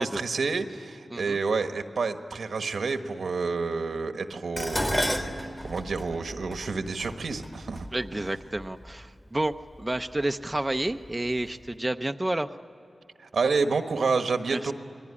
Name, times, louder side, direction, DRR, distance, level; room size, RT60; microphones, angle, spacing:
voice 1, 0.0-7.9 8.2-8.3 13.2-14.7, right 4 dB, 90° right, 7 dB, 1.4 m, -29 dB
Dishes pots and pans, 4.6-8.9 9.8-10.2 10.6-11.4 11.7-11.8, equal, 15° left, 1.8 m, -33 dB
voice 2, 7.9-12.6 14.5-14.7, right 1 dB, 15° right, 6 dB, 0.7 m, -30 dB
28.5 x 21.0 x 9.9 m, 2.7 s
wide cardioid pair, 120°, 0 cm